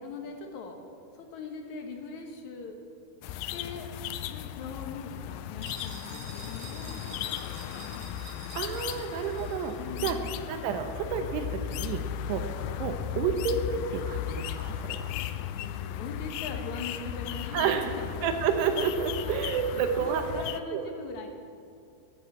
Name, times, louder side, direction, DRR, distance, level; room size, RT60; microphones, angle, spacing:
voice 1, 0.0-0.8 1.1-2.8 3.2-3.9 4.3-8.1 9.8-10.4 15.4-18.2 19.2-19.4 19.7-21.3, left 4 dB, 70° left, 3 dB, 1.8 m, -41 dB
sound 1, 3.2-20.6, left 11 dB, 85° left, 2.2 m, -36 dB
sound 2, 5.6-9.8, right 3 dB, 50° right, 1.9 m, -48 dB
voice 2, 8.5-10.2 10.5-12.5 12.8-15.1 17.5-17.9 18.2-20.4 20.7-20.9, right 7 dB, 80° right, 6 dB, 2.9 m, -30 dB
11.5 x 10.5 x 8.5 m, 2.5 s
omnidirectional pair, 4.9 m